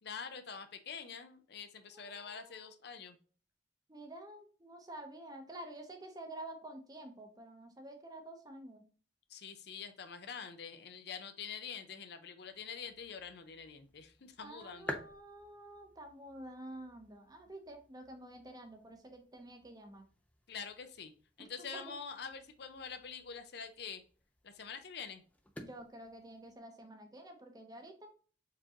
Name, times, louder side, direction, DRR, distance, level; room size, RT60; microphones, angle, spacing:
voice 1, 0.0-3.2 9.3-15.0 20.5-21.1 21.4-24.0 24.4-25.2, left 6 dB, 60° left, 9 dB, 0.6 m, -46 dB
voice 2, 1.9-2.7 3.9-8.8 14.4-20.1 21.4-21.9 25.6-28.1, right 1 dB, 20° right, 5 dB, 0.8 m, -49 dB
sound 1, 12.4-26.6, left 1 dB, 10° left, 0.5 m, -53 dB
4.7 x 3.7 x 2.8 m, 0.41 s
head